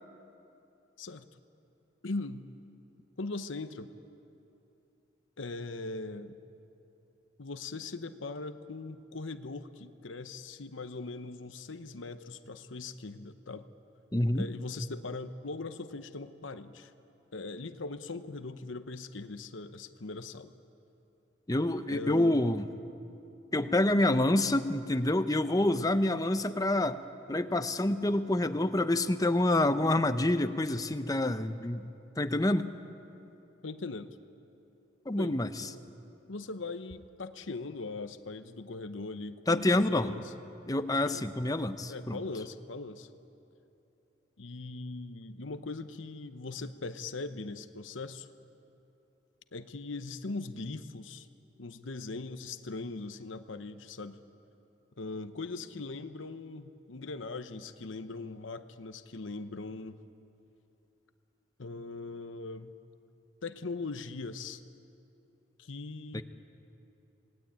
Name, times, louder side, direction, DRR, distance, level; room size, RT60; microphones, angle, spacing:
voice 1, 2.0-2.5 3.2-3.9 5.4-6.4 7.4-13.6 14.3-16.9 17.3-20.5 21.9-22.5 33.6-34.2 35.1-35.4 35.6-35.8 36.3-39.7 39.9-40.3 40.9-41.2 41.9-43.1 44.4-48.3 49.5-51.3 51.6-54.2 55.0-60.0 61.6-62.7 63.4-64.6 65.6-66.2, left 3 dB, 80° left, 10 dB, 0.9 m, -40 dB
voice 2, 14.1-14.5 21.5-22.6 23.5-27.0 27.3-31.9 32.2-32.7 35.1-35.7 39.5-40.1 40.7-42.2 66.1-66.2, left 1 dB, 20° left, 10 dB, 0.8 m, -27 dB
27.5 x 18.5 x 8.8 m, 2.8 s
head